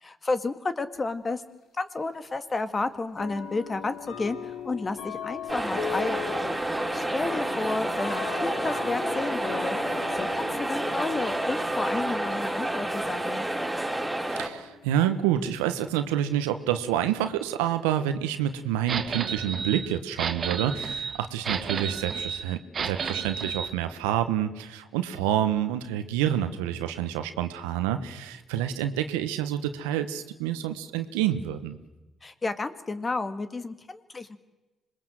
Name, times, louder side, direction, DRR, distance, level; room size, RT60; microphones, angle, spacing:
voice 1, 0.0-6.3 6.9-9.8 10.1-13.5 32.2-34.4, left 3 dB, 35° left, 10 dB, 2.0 m, -31 dB
sound 1, 0.9-1.0 2.1-2.2 3.2-16.4, left 9 dB, 70° left, 2.0 m, -40 dB
sound 2, 5.5-14.5, right 1 dB, 10° right, 4.7 m, -29 dB
voice 2, 14.2-31.8, right 11 dB, 85° right, 9 dB, 1.2 m, -28 dB
sound 3, 18.9-23.7, right 6 dB, 50° right, 1.4 m, -32 dB
26.0 x 20.5 x 7.7 m, 1.1 s
hypercardioid pair, 50°, 0 cm